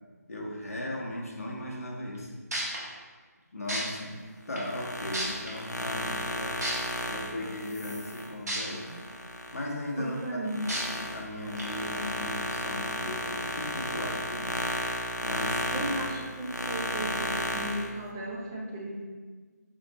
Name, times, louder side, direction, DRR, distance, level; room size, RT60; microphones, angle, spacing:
voice 1, 0.3-2.3 3.5-4.2 4.5-6.6 7.0-8.9 9.5-15.9, left 1 dB, 55° left, -2 dB, 0.9 m, -37 dB
sound 1, 2.1-2.2 2.5-2.8 3.7-3.8 4.6-4.7 5.1-5.5 6.6-6.7 8.5-8.6 9.1-9.2 10.7-10.8 11.6-11.7, right 1 dB, 70° right, 1.3 m, -31 dB
sound 2, 4.5-9.6 10.1-17.9, left 1 dB, 85° left, 0.5 m, -34 dB
voice 2, 10.0-10.7 15.7-16.1 16.4-19.0, right 1 dB, 10° right, -3 dB, 0.3 m, -35 dB
4.2 x 3.0 x 3.8 m, 1.5 s
figure-of-eight pair, 155°, 9 cm